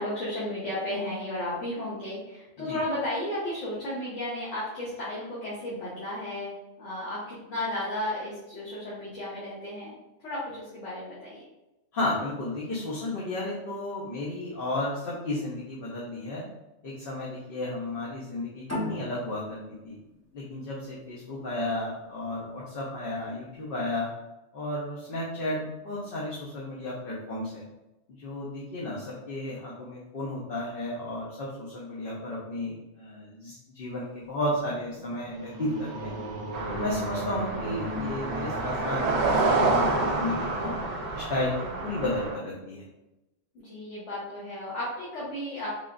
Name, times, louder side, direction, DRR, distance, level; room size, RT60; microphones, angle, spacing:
voice 1, 0.0-9.9 10.2-11.4 43.5-45.7, left 1 dB, 85° left, -8 dB, 1.3 m, -34 dB
voice 2, 11.9-16.4 16.8-20.0 20.3-24.1 24.5-27.6 28.1-36.1 36.7-40.7 41.1-42.8, left 1 dB, 55° left, -5 dB, 0.9 m, -33 dB
sound 1, 18.7-21.9, left 1 dB, 15° left, 0.9 m, -37 dB
sound 2, 34.3-41.6, equal, 20° right, 0.6 m, -38 dB
sound 3, 36.5-42.4, right 3 dB, 60° right, 0.4 m, -28 dB
3.7 x 3.3 x 2.4 m, 0.96 s
omnidirectional pair, 1.2 m